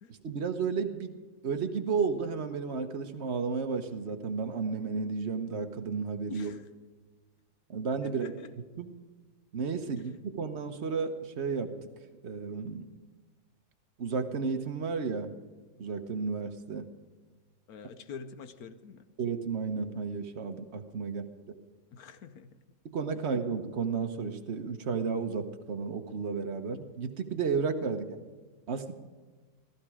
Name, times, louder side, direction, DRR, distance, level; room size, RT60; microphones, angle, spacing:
voice 1, 0.1-6.5 7.7-8.3 8.8-8.9 9.5-11.7 12.2-12.9 14.0-15.3 15.8-16.9 19.2-21.3 22.8-28.2 28.7-28.9, right 5 dB, 45° right, 6 dB, 1.0 m, -32 dB
voice 2, 6.3-6.7 8.0-8.5 10.0-10.2 17.7-19.0 21.0-21.1 21.9-22.6 27.8-28.0, left 6 dB, 65° left, 11 dB, 1.0 m, -46 dB
15.5 x 14.5 x 4.9 m, 1.3 s
omnidirectional pair, 2.3 m